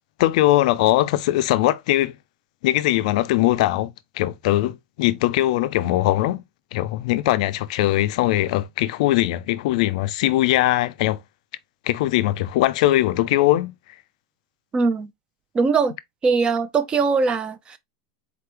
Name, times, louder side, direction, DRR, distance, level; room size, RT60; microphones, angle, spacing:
voice 1, 0.2-2.1 2.6-6.4 6.7-11.2 11.9-13.7, left 15 dB, 65° left, 0.4 m, -20 dB
voice 2, 14.7-15.1 15.5-15.9 16.2-17.8, right 4 dB, 25° right, 0.6 m, -21 dB
4.1 x 3.0 x 3.3 m
supercardioid pair, 125°, 4 cm